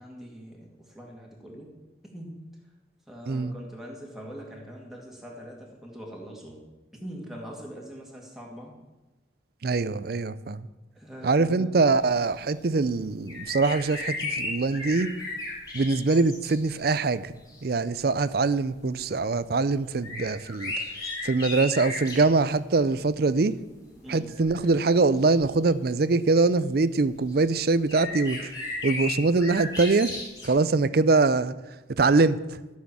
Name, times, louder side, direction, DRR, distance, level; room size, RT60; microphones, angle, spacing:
voice 1, 0.0-1.7 2.1-2.3 3.1-6.6 7.0-8.7 11.0-11.8 24.0-24.4, equal, ahead, -2 dB, 2.3 m, -42 dB
voice 2, 9.6-10.7 11.2-15.1 15.7-17.3 17.6-20.7 21.2-23.5 24.1-28.5 28.8-30.2 30.4-31.5 32.0-32.4, right 3 dB, 50° right, 16 dB, 0.5 m, -23 dB
sound 1, 13.3-16.8 17.5-17.6 20.0-22.3 24.3-24.7 25.4-25.5 27.3-27.4 27.9-30.5, left 2 dB, 20° left, 3.2 m, -34 dB
13.0 x 6.4 x 7.3 m, 1.1 s
head